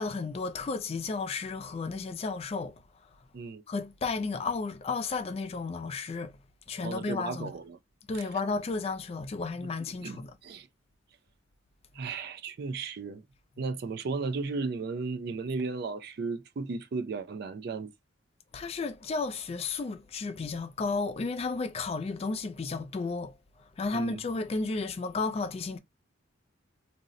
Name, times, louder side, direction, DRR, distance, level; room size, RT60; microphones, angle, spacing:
voice 1, 0.0-3.3 3.7-6.4 6.7-7.5 8.1-10.4 13.6-13.7 18.5-25.8, left 4 dB, 30° left, 0.3 m, -33 dB
voice 2, 6.8-7.8 10.0-10.7 11.9-13.2 13.6-17.9 23.9-24.2, right 4 dB, 50° right, 0.3 m, -35 dB
2.6 x 2.0 x 3.6 m
head